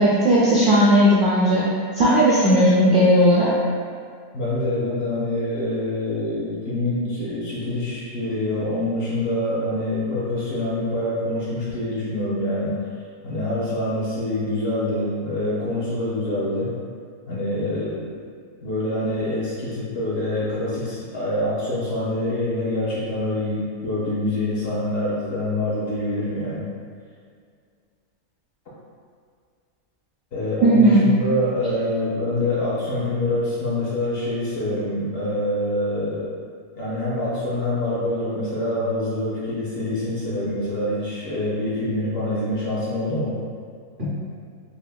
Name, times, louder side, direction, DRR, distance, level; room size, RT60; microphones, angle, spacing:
voice 1, 0.0-1.7 2.0-3.5 30.6-31.1 44.0-44.1, equal, 65° right, -8 dB, 0.5 m, -16 dB
voice 2, 4.3-12.8 13.2-16.7 17.3-18.1 18.6-26.6 30.3-36.3 36.8-43.4, left 1 dB, 60° left, -8 dB, 0.7 m, -25 dB
3.3 x 2.8 x 2.2 m, 2.1 s
omnidirectional pair, 1.5 m